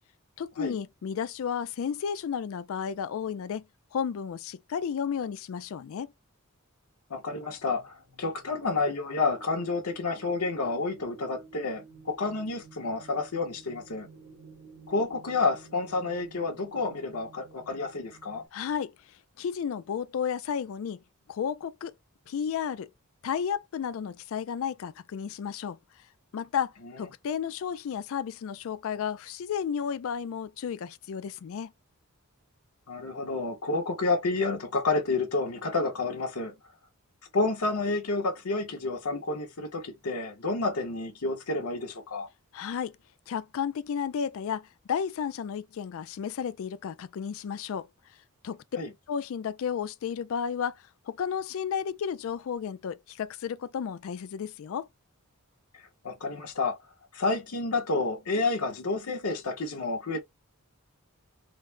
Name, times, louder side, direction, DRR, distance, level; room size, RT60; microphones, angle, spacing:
voice 1, 0.4-3.6 3.9-6.1 18.5-18.9 19.4-21.0 21.3-21.9 22.3-22.9 23.2-25.8 26.3-31.7 42.5-43.0 43.3-47.9 48.4-48.6 49.1-54.9, left 7 dB, 65° left, 0.3 m, -32 dB
voice 2, 7.1-14.1 14.9-18.4 32.9-36.5 37.3-42.3 48.8-48.9 55.7-56.8 57.1-60.2, left 3 dB, 85° left, 0.9 m, -30 dB
sound 1, 7.3-18.5, right 4 dB, 70° right, 1.5 m, -53 dB
3.9 x 2.1 x 3.2 m
head